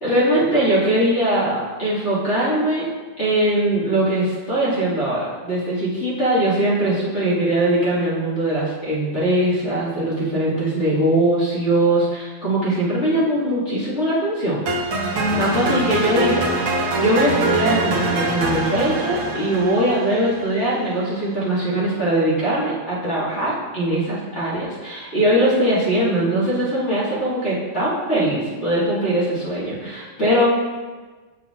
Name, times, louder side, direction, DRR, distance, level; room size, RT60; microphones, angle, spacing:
voice 1, 0.0-2.9 3.2-14.6 15.4-30.5, right 1 dB, 30° left, -9 dB, 1.4 m, -21 dB
sound 1, 14.7-20.8, right 2 dB, 60° right, 1.5 m, -23 dB
8.4 x 7.0 x 2.4 m, 1.3 s
omnidirectional pair, 3.7 m